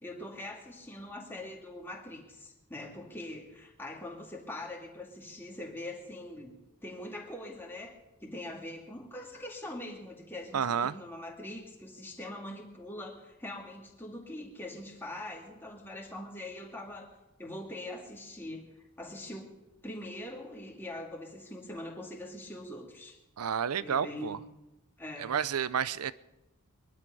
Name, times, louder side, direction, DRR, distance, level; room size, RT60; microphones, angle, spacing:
voice 1, 0.0-6.5 6.8-7.9 8.2-17.1 17.4-18.7 19.0-23.2 23.8-24.4 25.0-25.3, left 1 dB, 10° left, 2.2 m, -43 dB
voice 2, 10.5-10.9 23.4-24.4 25.2-26.1, right 7 dB, 90° right, 0.6 m, -30 dB
22.0 x 12.0 x 5.5 m
head